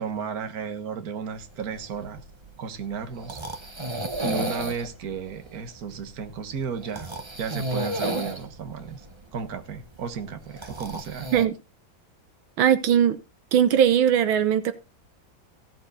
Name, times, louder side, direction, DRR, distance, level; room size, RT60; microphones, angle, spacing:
voice 1, 0.0-2.2 2.6-3.4 4.2-7.1 7.4-9.1 9.3-11.3, right 6 dB, 50° right, 1.8 m, -33 dB
sound 1, 1.4-11.5, right 1 dB, 20° right, 0.9 m, -34 dB
voice 2, 12.6-13.2 13.5-14.7, right 9 dB, 90° right, 1.9 m, -19 dB
16.0 x 7.7 x 4.1 m
omnidirectional pair, 2.1 m